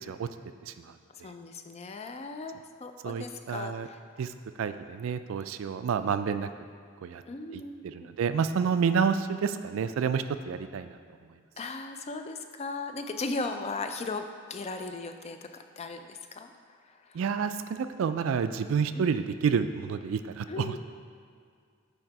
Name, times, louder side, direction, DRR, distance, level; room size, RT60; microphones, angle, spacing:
voice 1, 1.2-4.0 7.3-8.1 11.6-14.2 14.5-15.5 15.8-16.5 18.9-19.0 20.5-20.8, left 3 dB, 30° left, 7 dB, 0.4 m, -37 dB
voice 2, 3.0-3.9 4.2-4.3 4.6-6.5 7.0-7.2 7.9-10.9 17.1-20.8, right 6 dB, 70° right, 10 dB, 0.3 m, -29 dB
8.8 x 3.5 x 4.6 m, 2.2 s
head